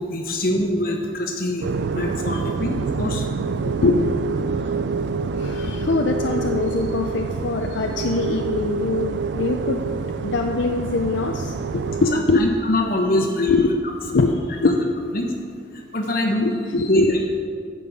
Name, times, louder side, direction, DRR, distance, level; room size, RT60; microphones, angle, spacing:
voice 1, 0.0-3.2 12.1-13.7 14.2-14.4 14.6-14.8 15.1-15.3 15.9-16.5 16.9-17.2, left 1 dB, 50° left, 1 dB, 1.2 m, -23 dB
sound 1, 1.6-12.2, right 4 dB, 65° right, 0.3 m, -26 dB
voice 2, 3.5-4.7 5.4-9.8 10.2-12.5 13.1-13.7 14.1-15.1 16.4-17.3, left 3 dB, 75° left, 3 dB, 0.5 m, -23 dB
9.4 x 5.3 x 7.7 m, 2.2 s
head